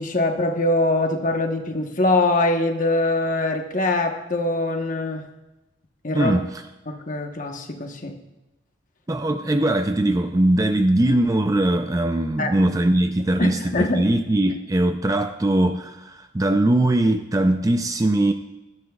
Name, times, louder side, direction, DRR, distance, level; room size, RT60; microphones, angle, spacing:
voice 1, 0.0-5.3 6.0-6.3 6.9-8.1 12.4-12.5 13.4-14.0, left 2 dB, 40° left, 4 dB, 1.1 m, -23 dB
voice 2, 6.1-6.6 9.1-18.3, right 1 dB, 15° right, 7 dB, 0.4 m, -21 dB
16.5 x 13.0 x 2.4 m, 1.0 s
head